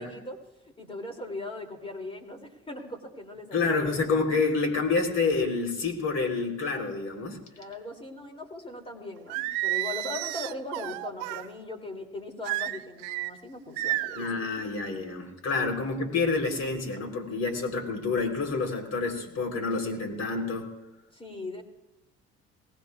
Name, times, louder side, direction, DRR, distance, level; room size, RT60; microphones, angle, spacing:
voice 1, 0.0-3.8 7.6-14.2 21.1-21.6, left 2 dB, 20° left, 4 dB, 2.8 m, -39 dB
voice 2, 3.5-7.4 14.1-20.8, left 4 dB, 60° left, 4 dB, 3.6 m, -28 dB
Singing, 9.3-11.5 12.4-13.3 13.8-14.3, right 16 dB, 85° right, 0.7 m, -31 dB
23.0 x 18.5 x 2.4 m, 1.0 s
supercardioid pair, 80°, 29 cm